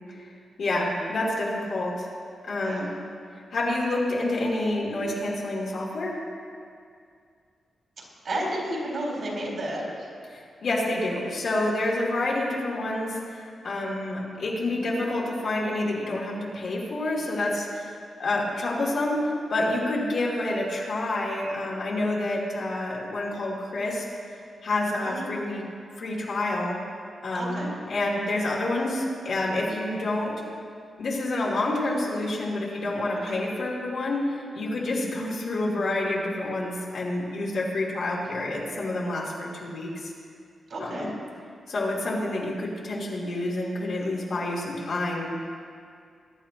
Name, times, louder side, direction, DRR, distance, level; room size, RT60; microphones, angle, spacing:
voice 1, 0.6-2.1 2.4-2.9 3.5-6.2 10.3-24.0 24.6-25.6 26.0-26.8 27.2-30.4 31.0-40.1 40.8-41.1 41.7-45.3, left 2 dB, 60° left, -5 dB, 3.0 m, -28 dB
voice 2, 8.2-9.8 25.0-25.3 27.3-27.7 33.3-33.4 40.7-41.1, right 1 dB, 55° right, -3 dB, 4.0 m, -31 dB
22.0 x 11.0 x 3.0 m, 2.3 s
wide cardioid pair, 155°, 0 cm